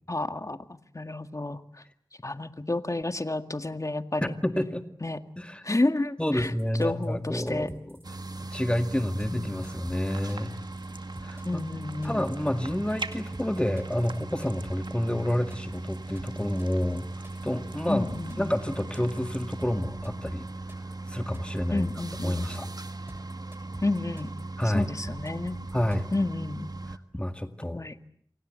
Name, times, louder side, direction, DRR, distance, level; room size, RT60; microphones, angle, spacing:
voice 1, 0.1-1.6 2.2-4.3 5.0-5.2 5.6-6.5 6.8-7.7 9.3-9.5 11.5-12.3 17.9-18.6 21.7-22.5 23.8-24.3 24.7-25.6 26.1-26.7 27.6-28.0, left 2 dB, 40° left, 9 dB, 1.9 m, -30 dB
voice 2, 4.4-4.8 5.4-5.6 6.2-8.0 8.4-10.6 11.2-11.6 12.0-17.1 17.4-18.1 18.4-20.5 21.1-21.9 22.2-22.7 24.6-24.9 25.7-26.1 27.1-27.8, left 1 dB, 15° left, 8 dB, 2.0 m, -29 dB
sound 1, 6.4-26.2, right 1 dB, 30° right, 6.7 m, -48 dB
sound 2, 8.0-27.0, right 2 dB, 55° right, 1.6 m, -39 dB
sound 3, 10.1-19.7, right 3 dB, 85° right, 2.0 m, -47 dB
28.5 x 25.0 x 7.7 m, 0.63 s
wide cardioid pair, 50°, 8 cm